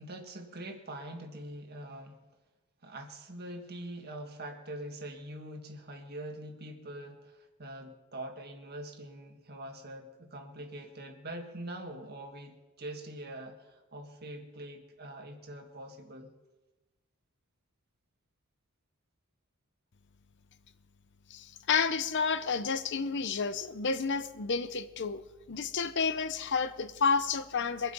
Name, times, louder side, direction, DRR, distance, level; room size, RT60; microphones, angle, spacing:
voice 1, 0.0-2.2 2.8-16.3, right 1 dB, 45° right, 1.8 m, -44 dB
voice 2, 21.3-25.2 25.5-27.9, left 5 dB, 55° left, 0.7 m, -30 dB
23.5 x 8.2 x 5.3 m
head